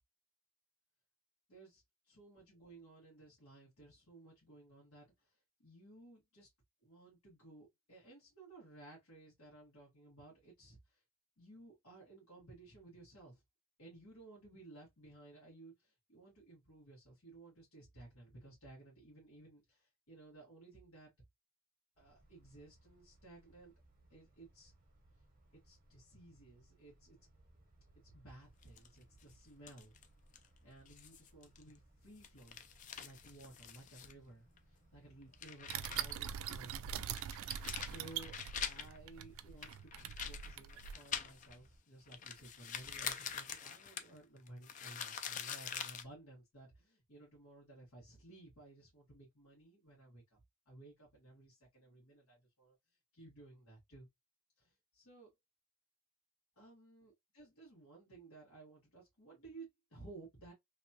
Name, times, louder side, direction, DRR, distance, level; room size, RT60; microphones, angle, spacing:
voice 1, 1.5-6.5 6.8-11.0 11.4-13.4 13.8-21.1 22.0-23.7 24.1-24.7 25.6-27.2 28.0-30.0 30.6-32.6 33.0-36.9 37.8-38.4 38.6-50.4 50.6-52.8 53.1-54.1 54.6-55.3 56.6-60.5, right 2 dB, 90° left, 1.4 m, -57 dB
sound 1, 22.0-41.8, right 1 dB, 40° right, 0.7 m, -67 dB
sound 2, 28.6-29.2 29.7-30.1 30.3-30.4 30.8-31.7 32.1-34.1 34.6-34.7 35.2-36.2 36.5-36.6 37.1-39.0 39.6-41.7 42.1-46.0, left 8 dB, 35° left, 0.3 m, -45 dB
sound 3, 35.7-40.9, right 9 dB, 75° right, 0.3 m, -43 dB
2.8 x 2.3 x 2.6 m
head